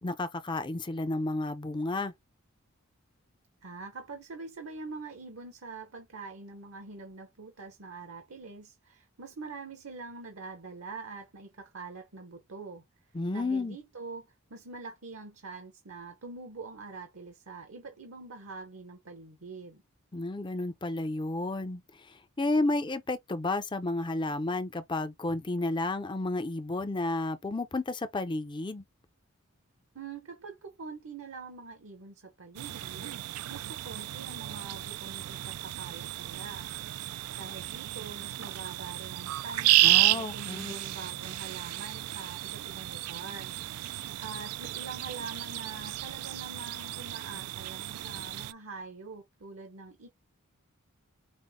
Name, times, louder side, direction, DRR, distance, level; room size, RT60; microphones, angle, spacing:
voice 1, 0.0-2.1 13.1-13.8 20.1-28.8 39.8-40.7, left 2 dB, 20° left, 0.5 m, -32 dB
voice 2, 3.6-12.8 13.3-19.8 29.9-33.1 33.5-36.7 37.4-43.9 44.2-50.1, right 4 dB, 65° right, 0.9 m, -44 dB
sound 1, 32.5-48.5, right 16 dB, 90° right, 0.3 m, -32 dB
5.2 x 2.1 x 3.5 m
head